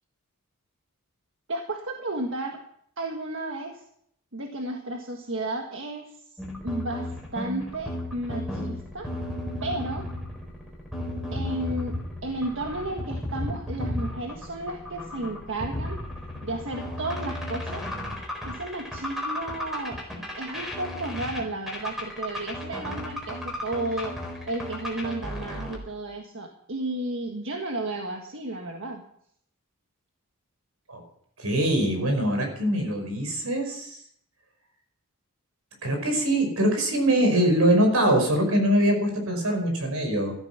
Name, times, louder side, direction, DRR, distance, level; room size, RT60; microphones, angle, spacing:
voice 1, 1.5-2.6 3.0-3.8 4.3-6.2 6.6-9.1 9.6-10.1 11.3-12.0 12.2-16.0 16.4-17.9 18.4-20.0 20.4-29.0, right 2 dB, 60° right, 2 dB, 1.6 m, -33 dB
sound 1, 6.4-25.8, left 1 dB, ahead, 4.1 m, -34 dB
voice 2, 31.4-34.0 35.8-40.3, right 1 dB, 80° right, 4 dB, 5.4 m, -23 dB
15.0 x 13.5 x 6.0 m, 0.68 s
head